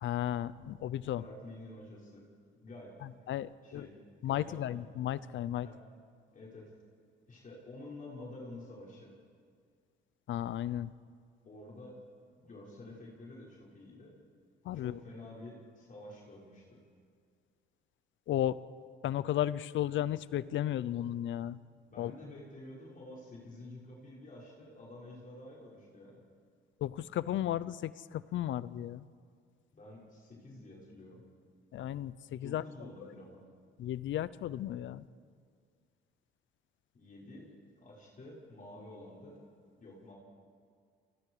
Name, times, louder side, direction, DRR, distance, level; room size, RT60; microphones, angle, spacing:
voice 1, 0.0-1.2 3.0-3.9 4.2-5.7 10.3-10.9 14.6-15.0 18.3-18.6 19.0-21.6 22.0-22.1 26.8-29.1 31.7-32.6 33.8-35.1, left 12 dB, 75° left, 18 dB, 0.7 m, -34 dB
voice 2, 1.1-2.2 2.5-3.2 3.6-3.9 4.2-4.7 5.6-5.8 6.3-6.7 7.3-9.1 11.4-12.0 12.4-14.1 14.7-16.8 21.8-26.2 29.7-31.2 32.4-33.4 36.9-39.4 39.8-40.1, left 2 dB, 40° left, -5 dB, 6.3 m, -49 dB
28.0 x 24.5 x 5.0 m, 2.1 s
cardioid pair, 90°, 20 cm